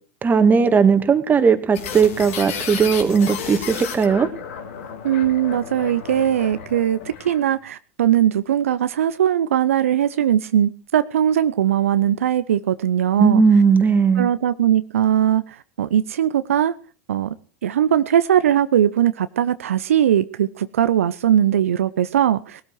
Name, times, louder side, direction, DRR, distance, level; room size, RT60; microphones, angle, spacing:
voice 1, 0.2-4.3 13.2-14.3, right 5 dB, 25° right, 9 dB, 2.2 m, -17 dB
sound 1, 1.7-7.6, left 7 dB, 70° left, 3.1 m, -33 dB
voice 2, 5.0-13.4 14.2-16.7 17.1-17.3 17.6-22.6, right 10 dB, 75° right, 13 dB, 0.7 m, -20 dB
20.0 x 13.0 x 4.7 m, 0.38 s
hypercardioid pair, 85°, 8 cm